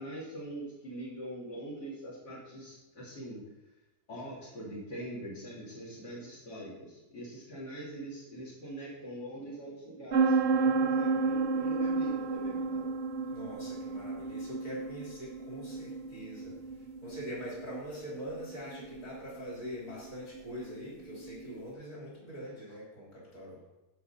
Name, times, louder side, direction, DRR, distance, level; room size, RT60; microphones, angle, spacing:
voice 1, 0.0-3.4 4.1-12.9, right 1 dB, 70° left, -7 dB, 3.6 m, -43 dB
sound 1, 10.1-21.6, right 4 dB, 70° right, 0.5 m, -32 dB
voice 2, 13.3-23.7, equal, 45° left, -6 dB, 3.8 m, -43 dB
15.0 x 5.1 x 4.3 m, 1.0 s
omnidirectional pair, 1.9 m